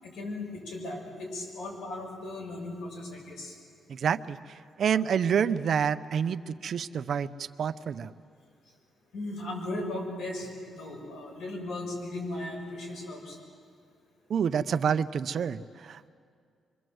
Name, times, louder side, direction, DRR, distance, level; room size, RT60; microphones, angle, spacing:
voice 1, 0.0-3.6 9.1-13.4, left 2 dB, 90° left, 0 dB, 6.8 m, -37 dB
voice 2, 3.9-8.1 14.3-16.1, right 7 dB, 45° right, 12 dB, 0.6 m, -28 dB
26.0 x 23.5 x 7.8 m, 2.2 s
cardioid pair, 175°, 0 cm